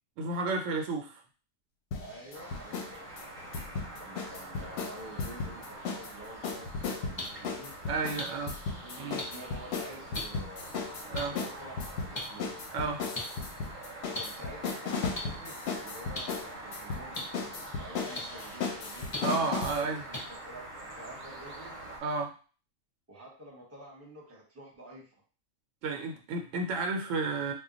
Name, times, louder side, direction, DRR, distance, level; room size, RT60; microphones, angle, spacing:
voice 1, 0.2-1.1 7.9-8.5 9.0-9.2 11.1-11.4 12.7-13.0 19.2-20.0 22.0-22.3 25.8-27.5, right 3 dB, 80° right, 3 dB, 0.9 m, -32 dB
sound 1, 1.9-2.9 3.2-6.1 6.4-19.8, left 5 dB, 65° left, 0.8 m, -36 dB
voice 2, 2.0-3.3 4.0-7.7 8.2-8.5 8.8-10.7 11.1-12.5 14.1-19.3 19.7-21.8 23.1-25.1, right 1 dB, 15° right, -3 dB, 0.7 m, -49 dB
sound 2, 2.3-22.0, right 1 dB, 45° right, 0.7 m, -45 dB
sound 3, 7.2-7.3 8.2-8.3 9.2-9.3 10.1-10.2 11.1-11.2 12.1-12.2 13.1-13.2 14.1-14.2 15.1-15.2 16.1-16.2 17.1-17.2 18.1-18.2 19.1-19.2 20.1-20.2, left 2 dB, 35° left, 0.4 m, -34 dB
2.2 x 2.2 x 3.8 m, 0.38 s
omnidirectional pair, 1.3 m